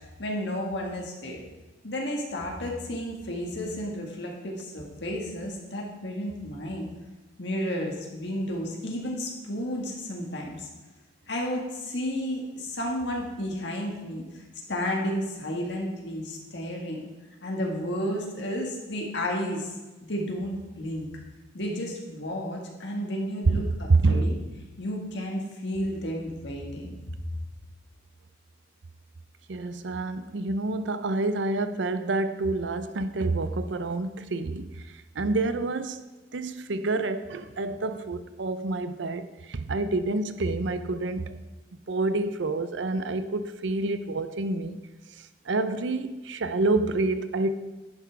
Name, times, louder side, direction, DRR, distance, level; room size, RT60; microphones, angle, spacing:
voice 1, 0.2-1.5 1.8-6.9 7.4-10.7 11.3-14.4 14.7-17.0 17.4-19.7 20.1-21.1 21.5-24.4 24.8-27.2, equal, 60° left, -1 dB, 1.8 m, -32 dB
voice 2, 23.5-24.3 29.5-36.0 36.3-41.4 41.9-44.8 45.1-47.5, right 3 dB, 70° right, 12 dB, 0.5 m, -28 dB
10.5 x 6.0 x 4.6 m, 1.2 s
head